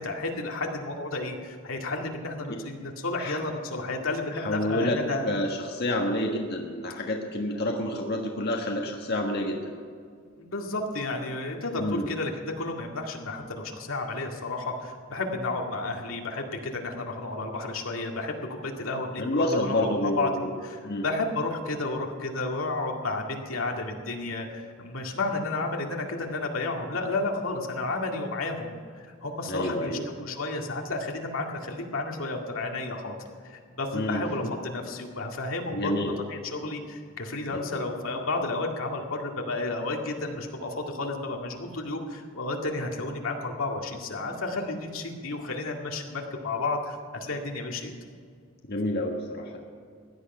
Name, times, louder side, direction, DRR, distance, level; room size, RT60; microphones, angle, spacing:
voice 1, 0.0-5.3 10.4-18.4 18.6-20.3 20.6-33.1 33.4-47.9, left 2 dB, 85° left, 1 dB, 2.1 m, -32 dB
voice 2, 4.3-9.7 11.8-12.1 19.2-20.5 20.8-21.1 29.5-30.0 33.9-34.5 35.7-36.1 37.5-37.8 48.6-49.6, left 1 dB, 50° left, 1 dB, 1.5 m, -29 dB
17.0 x 11.5 x 5.5 m, 2.1 s
head